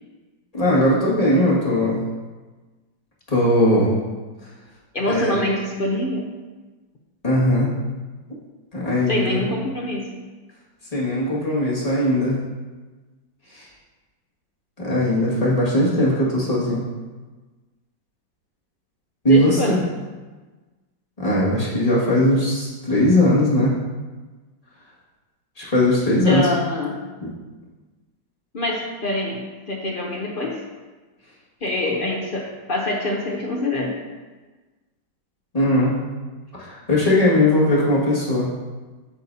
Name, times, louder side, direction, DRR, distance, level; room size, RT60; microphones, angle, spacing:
voice 1, 0.5-2.0 3.3-3.9 5.1-5.4 7.2-7.7 8.7-9.4 10.9-12.4 13.5-13.6 14.8-16.8 19.2-19.8 21.2-23.7 25.6-26.5 35.5-35.9 36.6-38.5, left 1 dB, 20° left, -7 dB, 1.9 m, -19 dB
voice 2, 4.9-6.2 9.1-10.1 19.3-19.9 26.2-27.0 28.5-30.6 31.6-34.0, left 2 dB, 65° left, -1 dB, 0.5 m, -25 dB
8.2 x 7.7 x 2.7 m, 1.3 s
omnidirectional pair, 2.0 m